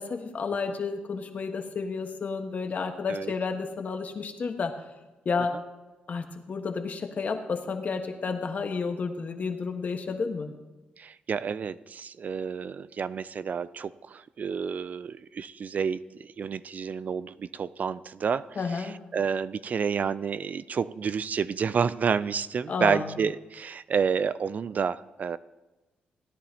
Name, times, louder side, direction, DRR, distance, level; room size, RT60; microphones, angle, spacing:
voice 1, 0.0-4.7 5.2-5.6 6.1-10.5 18.6-19.0 22.7-23.2, left 4 dB, 50° left, 5 dB, 1.3 m, -31 dB
voice 2, 11.0-25.4, right 6 dB, 50° right, 16 dB, 0.3 m, -30 dB
17.0 x 10.0 x 2.8 m, 1.1 s
cardioid pair, 80°, 3 cm